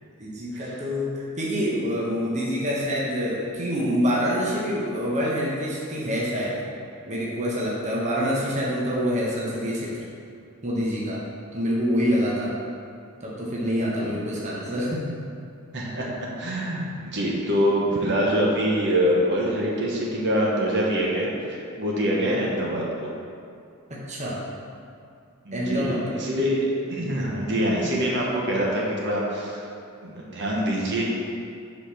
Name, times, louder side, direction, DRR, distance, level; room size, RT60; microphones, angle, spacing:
voice 1, 0.2-6.6 7.1-10.0 10.6-11.2 11.5-12.5 13.2-15.1 23.9-24.4 25.5-26.3 27.9-28.1, equal, 35° right, -5 dB, 1.0 m, -26 dB
voice 2, 15.7-23.1 25.4-29.6 30.0-31.0, equal, 55° right, -4 dB, 1.0 m, -25 dB
5.2 x 4.3 x 5.7 m, 2.5 s
head